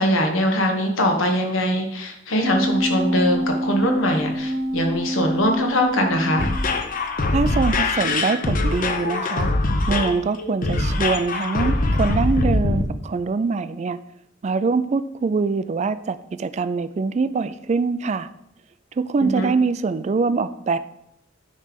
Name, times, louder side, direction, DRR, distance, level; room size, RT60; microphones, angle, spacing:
voice 1, 0.0-6.5 19.2-19.5, equal, 90° left, 3 dB, 1.4 m, -22 dB
sound 1, 2.4-7.0 7.4-7.5, equal, 5° left, 0.9 m, -26 dB
sound 2, 6.4-12.8, left 2 dB, 45° left, 0.7 m, -22 dB
voice 2, 7.3-9.5 9.9-14.0 14.4-18.3 19.0-20.8, right 4 dB, 35° right, 13 dB, 0.3 m, -23 dB
9.7 x 3.3 x 5.2 m, 0.76 s
head